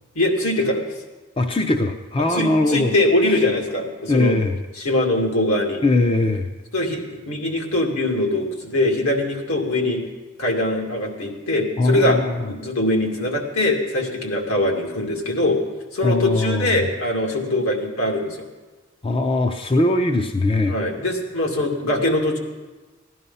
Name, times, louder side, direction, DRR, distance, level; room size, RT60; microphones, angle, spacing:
voice 1, 0.2-0.9 2.3-4.4 4.8-5.8 6.7-10.0 10.4-12.2 12.4-15.6 15.9-18.5 20.7-22.4, left 1 dB, 80° left, 1 dB, 2.4 m, -22 dB
voice 2, 1.4-2.9 3.3-3.4 4.1-4.6 5.8-6.5 11.8-12.5 16.0-16.8 19.0-20.8, left 2 dB, 25° left, 6 dB, 0.6 m, -20 dB
16.5 x 11.0 x 5.5 m, 1.2 s
head